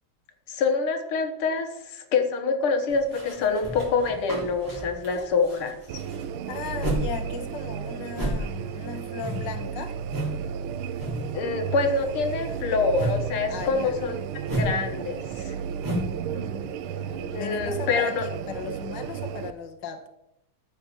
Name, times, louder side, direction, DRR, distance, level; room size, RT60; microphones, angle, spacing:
voice 1, 0.5-5.7 11.3-14.2 14.5-15.6 17.3-18.2, left 4 dB, 85° left, 6 dB, 2.2 m, -26 dB
sound 1, 2.9-7.1 7.4-10.4 10.7-11.4 11.7-16.2, right 1 dB, 10° right, 3.7 m, -32 dB
sound 2, 5.9-19.5, right 8 dB, 85° right, 1.5 m, -33 dB
voice 2, 6.5-9.9 13.5-14.0 16.3-20.1, left 6 dB, 60° left, 5 dB, 1.7 m, -37 dB
13.5 x 5.7 x 7.2 m, 0.85 s
omnidirectional pair, 2.3 m